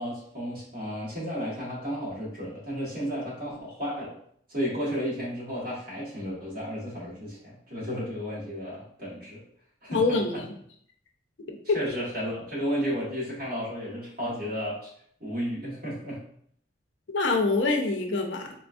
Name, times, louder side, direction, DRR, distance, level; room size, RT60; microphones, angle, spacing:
voice 1, 0.0-4.1 4.5-9.4 9.8-10.2 11.7-14.9 15.2-16.2, equal, 50° right, -7 dB, 1.5 m, -33 dB
voice 2, 9.9-10.5 11.7-11.8 17.1-18.5, left 3 dB, 70° left, 3 dB, 0.5 m, -25 dB
4.2 x 2.3 x 2.5 m, 0.64 s
head